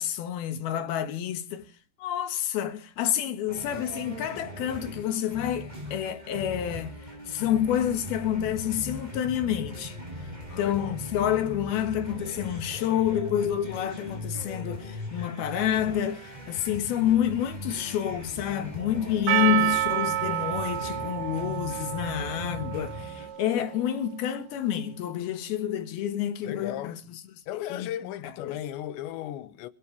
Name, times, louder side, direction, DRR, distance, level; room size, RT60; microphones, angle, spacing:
voice 1, 0.0-1.6 2.0-6.9 7.3-10.0 10.6-26.9 27.7-27.9 28.5-28.6, left 10 dB, 65° left, 3.2 m, -28 dB
sound 1, 3.5-23.3, left 1 dB, 10° right, 7.2 m, -40 dB
voice 2, 10.5-11.0 11.7-11.8 19.4-19.8 26.4-27.0 27.5-29.7, left 12 dB, 90° left, 3.4 m, -37 dB
Percussion, 19.3-23.8, right 13 dB, 85° right, 3.5 m, -29 dB
22.0 x 13.5 x 4.6 m
omnidirectional pair, 5.0 m